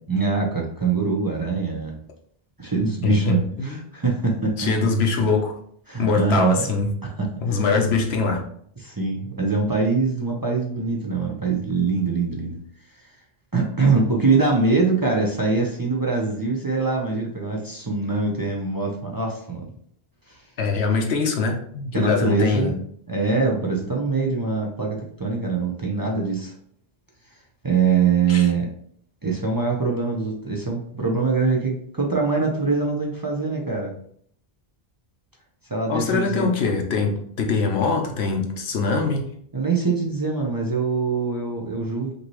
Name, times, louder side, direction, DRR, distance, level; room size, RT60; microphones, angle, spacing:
voice 1, 0.1-2.0 2.6-4.7 5.9-6.6 7.0-7.6 8.8-12.6 13.5-19.6 20.3-20.4 21.9-22.7 23.1-26.5 27.6-28.7 29.2-33.9 35.7-36.5 39.5-42.1, right 4 dB, 25° right, -1 dB, 0.6 m, -23 dB
voice 2, 3.0-3.8 4.6-5.6 6.0-6.9 7.4-8.4 20.6-22.8 28.3-28.5 35.9-39.2, left 4 dB, 85° left, 2 dB, 1.1 m, -23 dB
5.3 x 2.9 x 3.0 m, 0.64 s
omnidirectional pair, 1.0 m